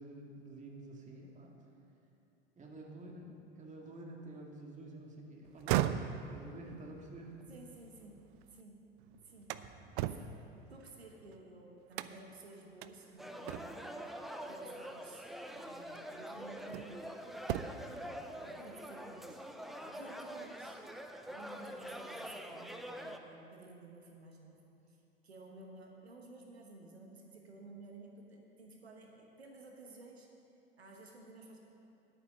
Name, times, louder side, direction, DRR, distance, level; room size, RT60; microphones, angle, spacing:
voice 1, 0.0-1.5 2.6-7.3, right 2 dB, 25° right, 0 dB, 2.0 m, -49 dB
sound 1, 5.5-8.6 9.0-11.4 11.9-12.4 12.8-12.9 13.5-14.0 15.2-15.4 15.9-17.1 17.4-18.0, right 12 dB, 55° right, 0.5 m, -38 dB
voice 2, 7.5-8.9 9.2-9.6 10.1-13.9 14.5-15.2 15.5-17.1 17.6-20.8 21.3-24.6 24.9-30.3 30.8-31.6, right 2 dB, 85° right, 1 dB, 1.2 m, -54 dB
sound 2, 13.2-23.2, equal, ahead, 0.6 m, -45 dB
11.0 x 8.8 x 5.3 m, 2.7 s
figure-of-eight pair, 75°, 31 cm